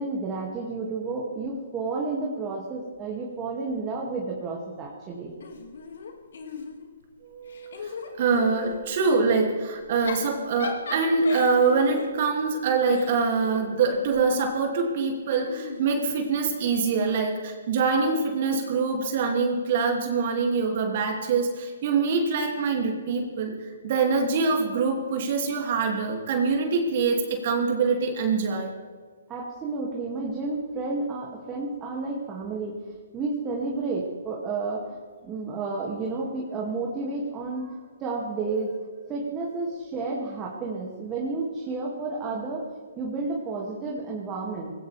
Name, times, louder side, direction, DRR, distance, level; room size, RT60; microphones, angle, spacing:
voice 1, 0.0-5.3 29.3-32.8 33.1-35.0 35.2-38.7 39.1-42.7 43.0-44.7, right 3 dB, 20° right, -3 dB, 2.5 m, -31 dB
Giggle / Chuckle chortle, 5.4-7.0 7.4-8.8 9.8-14.3 15.4-16.8, left 4 dB, 65° left, 2.5 m, -39 dB
voice 2, 7.3-23.5 23.8-28.7 38.5-38.6, right 4 dB, 45° right, 1 dB, 2.8 m, -24 dB
20.0 x 17.0 x 3.6 m, 1.5 s
hypercardioid pair, 135°, 0 cm